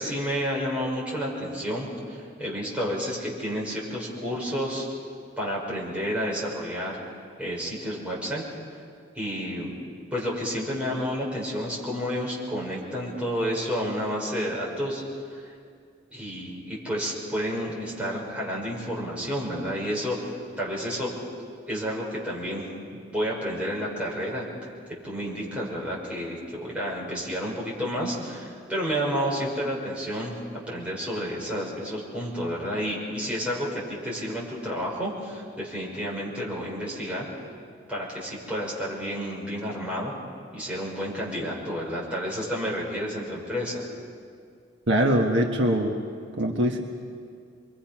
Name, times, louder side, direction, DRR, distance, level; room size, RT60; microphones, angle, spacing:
voice 1, 0.0-4.9 5.4-7.0 7.4-8.4 9.1-9.7 10.1-15.0 15.3-15.5 16.1-20.2 20.6-21.1 21.7-22.7 22.9-24.5 25.0-30.4 30.7-37.3 37.9-40.1 40.5-43.8, equal, 5° right, -5 dB, 5.9 m, -30 dB
voice 2, 44.9-45.9 46.4-46.8, right 1 dB, 65° right, 1 dB, 1.6 m, -22 dB
27.5 x 23.0 x 6.0 m, 2.2 s
head